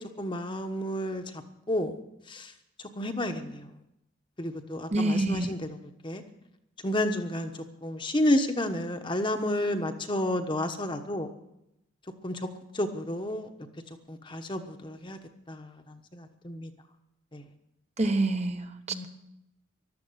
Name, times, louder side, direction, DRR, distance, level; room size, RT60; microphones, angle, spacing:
voice 1, 0.2-1.2 1.7-1.9 2.3-2.5 3.0-3.6 4.4-5.7 6.0-6.2 6.8-7.5 7.8-11.3 12.2-12.5 12.7-13.5 14.1-15.2 15.5-15.7 16.1-16.7 17.3-17.4 18.9-19.1, left 1 dB, 25° left, 6 dB, 1.1 m, -30 dB
voice 2, 4.9-5.5 18.0-19.1, right 2 dB, 35° right, 7 dB, 1.0 m, -27 dB
14.5 x 12.0 x 8.0 m, 0.84 s
head